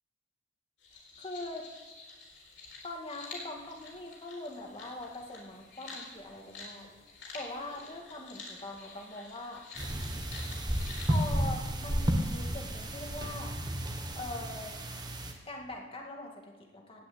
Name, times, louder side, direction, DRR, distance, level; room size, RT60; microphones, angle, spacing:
sound 1, 0.8-11.4, left 3 dB, 60° left, 4.2 m, -48 dB
voice 1, 1.2-1.7 2.8-6.9 7.3-9.6 11.1-13.6 14.1-14.8 15.5-17.1, left 2 dB, 30° left, 1 dB, 2.1 m, -42 dB
sound 2, 9.8-15.3, equal, 20° right, 1.4 m, -32 dB
16.5 x 6.2 x 9.6 m, 1.3 s
head